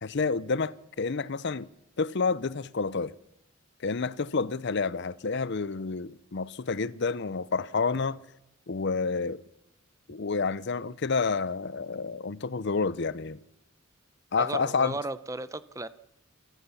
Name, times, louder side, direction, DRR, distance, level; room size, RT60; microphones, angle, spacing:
voice 1, 0.0-1.7 2.0-3.1 3.8-8.2 8.7-9.4 10.1-13.4 14.3-15.0, left 4 dB, 55° left, 0.6 m, -29 dB
voice 2, 14.4-15.9, right 2 dB, 15° right, 0.7 m, -35 dB
28.5 x 13.0 x 7.1 m
head